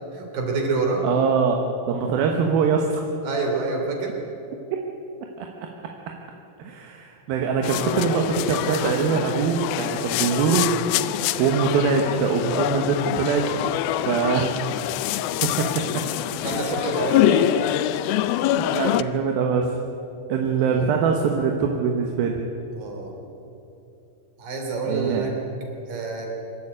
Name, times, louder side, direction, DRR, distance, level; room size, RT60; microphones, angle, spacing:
voice 1, 0.1-1.0 3.2-4.1 16.4-17.6 20.6-20.8 22.7-23.1 24.4-25.4 25.9-26.3, right 3 dB, 65° right, 1 dB, 4.7 m, -27 dB
voice 2, 1.0-1.6 1.9-3.0 5.4-5.5 6.6-10.8 11.4-13.5 14.1-14.5 15.4-16.0 18.6-19.7 20.3-22.4 24.9-25.2, right 6 dB, 80° right, 2 dB, 3.1 m, -23 dB
sound 1, 7.6-19.0, left 13 dB, 85° left, 2.5 m, -25 dB
24.5 x 13.0 x 8.7 m, 2.8 s
omnidirectional pair, 4.2 m